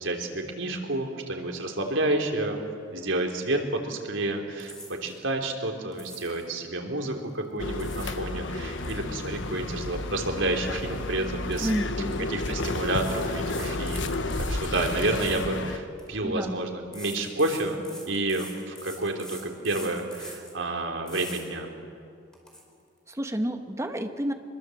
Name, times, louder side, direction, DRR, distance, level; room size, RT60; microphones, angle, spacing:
voice 1, 0.0-2.6 2.9-4.7 5.0-11.7 12.3-14.2 14.5-17.8 18.1-21.7, right 2 dB, 90° right, 3 dB, 3.4 m, -30 dB
sound 1, 4.6-5.2 5.9-6.5 7.5-8.2 8.5-10.4 10.7-10.9 11.5-12.2 12.9-16.1 16.9-20.6 21.1-21.4 21.9-22.0 22.3-22.6, equal, 5° left, 4.3 m, -44 dB
sound 2, 7.6-15.8, left 2 dB, 75° left, 1.2 m, -32 dB
voice 2, 11.6-12.3 16.2-16.5 23.1-24.3, equal, 15° right, 6 dB, 1.5 m, -30 dB
25.0 x 22.0 x 7.9 m, 2.3 s
head